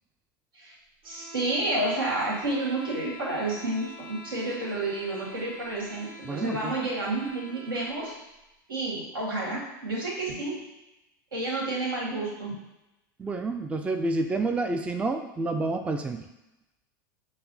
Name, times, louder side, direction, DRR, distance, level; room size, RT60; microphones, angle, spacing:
sound 1, 1.0-8.1, equal, 50° right, 1.0 m, -46 dB
voice 1, 1.0-8.1 8.7-10.5 11.3-12.5, right 2 dB, 85° right, -4 dB, 1.5 m, -30 dB
voice 2, 6.3-6.7 13.2-16.2, right 3 dB, 10° right, 5 dB, 0.3 m, -29 dB
5.6 x 2.1 x 3.9 m, 0.94 s
hypercardioid pair, 90°, 11 cm